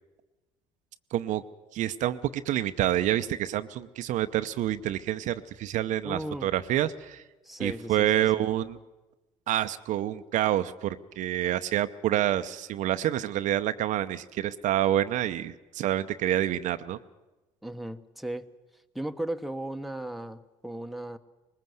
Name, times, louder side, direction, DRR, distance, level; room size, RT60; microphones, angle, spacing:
voice 1, 1.1-1.4 1.7-7.2 7.6-8.8 9.5-17.0, right 12 dB, 65° right, 11 dB, 0.8 m, -28 dB
voice 2, 6.0-6.5 7.4-8.2 17.6-18.5 18.9-21.2, right 1 dB, ahead, 7 dB, 1.1 m, -36 dB
20.5 x 19.5 x 7.9 m, 1.1 s
supercardioid pair, 75°, 14 cm